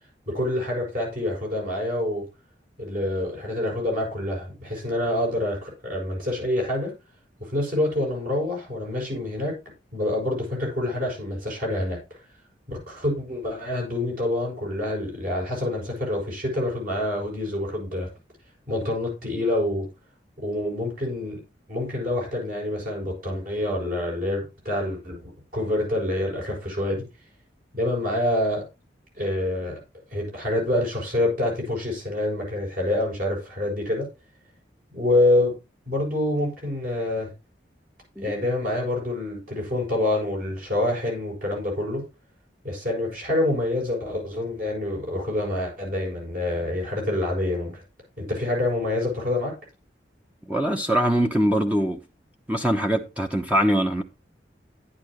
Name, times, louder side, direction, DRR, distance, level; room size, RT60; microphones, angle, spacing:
voice 1, 0.3-2.2 2.8-6.9 7.4-9.5 9.9-12.0 12.7-18.1 18.7-19.9 20.4-21.4 21.7-27.0 27.7-28.6 29.2-29.8 30.1-34.1 34.9-35.5 35.9-37.3 38.2-42.0 42.6-47.8 48.2-49.5, left 1 dB, 50° right, 7.1 m, -26 dB
voice 2, 50.5-52.0 52.5-54.0, equal, 10° right, 1.0 m, -22 dB
11.0 x 11.0 x 3.1 m
head